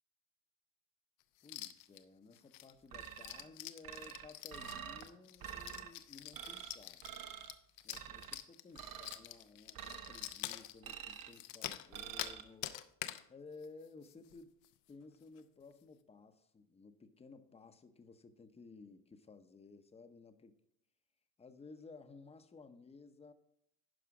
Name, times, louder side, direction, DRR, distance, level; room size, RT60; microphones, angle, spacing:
sound 1, 1.4-2.0 2.3-12.4 12.6-13.2 13.6-13.7 14.0-14.4 14.6-14.7 15.2-15.4, left 14 dB, 80° left, 0.7 m, -46 dB
voice 1, 1.4-7.1 7.8-12.8 13.3-14.6 14.9-20.6 21.4-23.3, left 4 dB, 15° left, 9 dB, 0.7 m, -56 dB
sound 2, 2.9-3.5 3.8-5.1 5.4-5.9 6.3-6.8 7.0-7.5 7.9-8.4 8.8-9.2 9.8-10.3 10.8-11.4 11.9-12.4, right 9 dB, 45° right, 1.0 m, -47 dB
11.0 x 4.9 x 4.9 m, 0.75 s
supercardioid pair, 105°, 47 cm